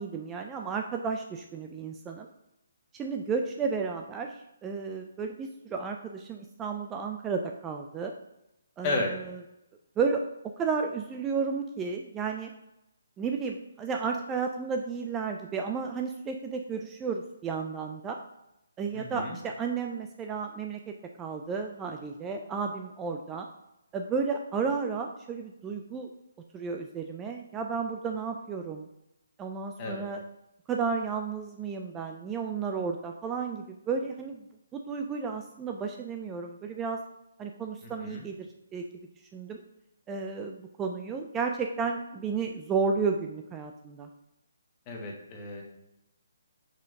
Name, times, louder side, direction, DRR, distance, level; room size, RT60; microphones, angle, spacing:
voice 1, 0.0-2.3 2.9-8.1 8.8-9.4 10.0-10.2 10.6-12.5 13.2-18.2 18.8-23.5 23.9-26.1 26.5-28.9 29.4-30.2 30.7-34.5 34.7-37.0 37.4-38.5 38.7-38.8 39.3-39.6 40.1-44.1, right 5 dB, 15° right, 3 dB, 0.4 m, -32 dB
voice 2, 18.9-19.4 29.8-30.0 37.8-38.3 44.9-45.6, left 2 dB, 25° left, 0 dB, 1.4 m, -33 dB
5.1 x 4.5 x 4.7 m, 0.88 s
figure-of-eight pair, 145°, 0 cm